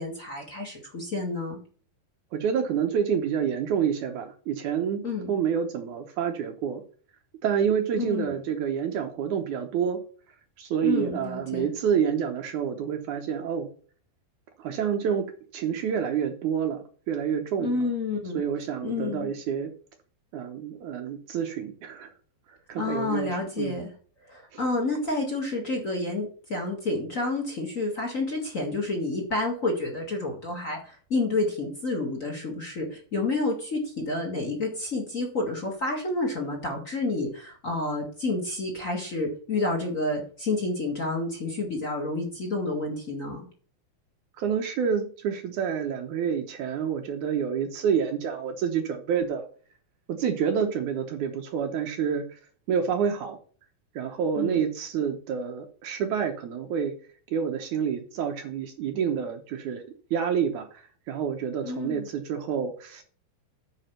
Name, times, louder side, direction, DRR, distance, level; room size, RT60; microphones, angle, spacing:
voice 1, 0.0-1.6 5.0-5.3 8.0-8.4 10.8-11.7 17.6-18.4 18.8-19.3 22.8-23.9 24.3-43.5 54.4-54.6 61.6-62.1, left 2 dB, 40° left, 1 dB, 1.1 m, -29 dB
voice 2, 2.3-6.8 7.4-10.0 10.6-13.7 14.6-17.9 18.3-19.7 20.3-22.1 22.5-23.8 24.5-24.6 44.4-49.5 50.1-52.4 52.7-53.4 54.0-56.9 57.3-59.8 60.1-63.0, right 7 dB, 80° right, 4 dB, 1.7 m, -28 dB
9.7 x 4.3 x 5.8 m, 0.42 s
omnidirectional pair, 4.8 m